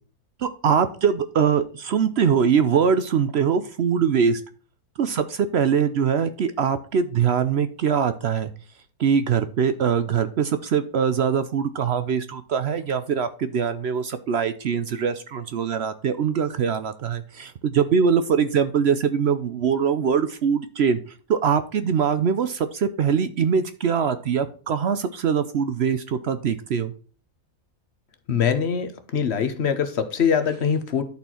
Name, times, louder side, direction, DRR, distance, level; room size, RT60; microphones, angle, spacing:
voice 1, 0.4-4.4 5.0-8.5 9.0-21.0 21.3-26.9, right 7 dB, 60° right, 11 dB, 0.7 m, -22 dB
voice 2, 28.3-31.0, left 7 dB, 50° left, 9 dB, 1.2 m, -23 dB
11.5 x 4.4 x 4.3 m, 0.40 s
omnidirectional pair, 1.6 m